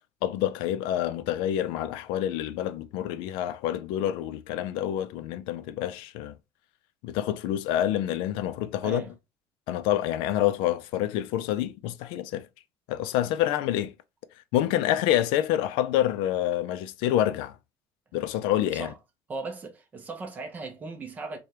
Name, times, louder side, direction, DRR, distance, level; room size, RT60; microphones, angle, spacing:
voice 1, 0.2-6.3 7.0-9.0 9.7-12.5 12.9-13.9 14.5-17.6 18.1-18.9, left 12 dB, 80° left, 0.4 m, -27 dB
voice 2, 19.3-21.4, right 3 dB, 20° right, 0.6 m, -37 dB
4.8 x 2.3 x 2.8 m
cardioid pair, 180°, 8 cm